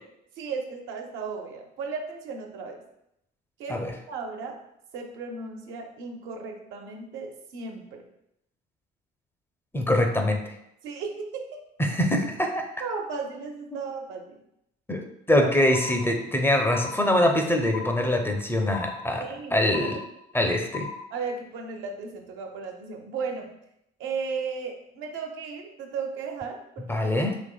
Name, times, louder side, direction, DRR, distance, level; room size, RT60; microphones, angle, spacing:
voice 1, 0.4-2.8 3.6-3.8 4.1-4.6 4.9-8.0 10.8-11.4 12.8-14.2 15.4-15.5 16.0-16.1 19.2-19.6 21.1-23.5 24.0-27.1, right 5 dB, 70° right, 2 dB, 0.6 m, -35 dB
voice 2, 9.7-10.4 11.8-12.6 14.9-20.0 20.3-20.9 26.9-27.4, left 1 dB, 10° left, 4 dB, 0.4 m, -24 dB
sound 1, 15.7-16.4 16.7-17.4 17.7-18.4 18.7-19.4 19.7-20.4 20.7-21.3, left 6 dB, 85° left, 0.5 m, -38 dB
3.4 x 3.0 x 2.2 m, 0.79 s
hypercardioid pair, 65°, 21 cm